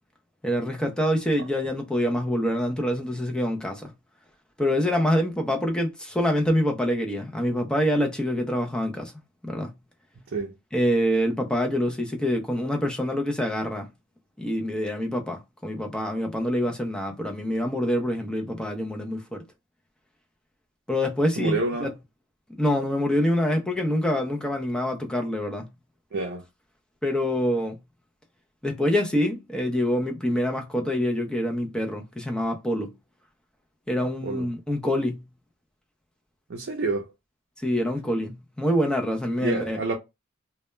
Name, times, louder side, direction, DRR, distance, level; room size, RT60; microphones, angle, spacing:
voice 1, 0.4-3.9 4.6-9.1 9.4-9.7 10.7-13.9 14.4-19.4 20.9-21.9 22.6-25.7 27.0-27.8 28.6-32.9 33.9-35.3 37.6-39.8, equal, 5° left, 0.4 m, -26 dB
voice 2, 21.4-21.9 26.1-26.4 34.2-34.5 36.5-37.1 39.4-40.0, right 3 dB, 55° right, 0.5 m, -28 dB
2.2 x 2.0 x 3.1 m
head